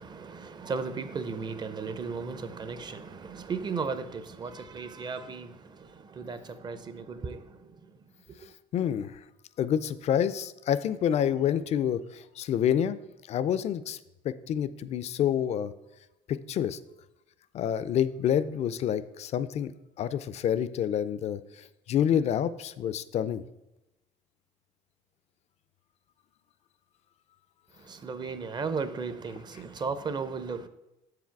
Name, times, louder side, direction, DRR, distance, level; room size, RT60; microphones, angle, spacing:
voice 1, 0.0-7.9 8.4-8.5 27.8-30.7, right 5 dB, 30° right, 11 dB, 0.5 m, -36 dB
voice 2, 8.7-9.2 9.6-13.0 13.3-14.0 14.2-15.7 16.3-16.8 17.5-19.7 20.0-23.4, left 9 dB, 45° left, 15 dB, 0.4 m, -28 dB
6.9 x 4.9 x 4.6 m, 0.94 s
cardioid pair, 110°, 15 cm